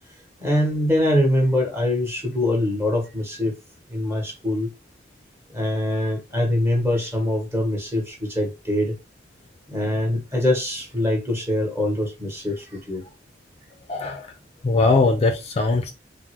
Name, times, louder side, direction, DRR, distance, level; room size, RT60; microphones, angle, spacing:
voice 1, 0.4-3.5 3.9-4.7 5.5-9.0 9.7-13.0, left 1 dB, 15° right, 1.0 m, -23 dB
voice 2, 13.9-14.2 14.6-15.9, left 3 dB, 35° left, 0.4 m, -20 dB
3.6 x 2.0 x 2.9 m
head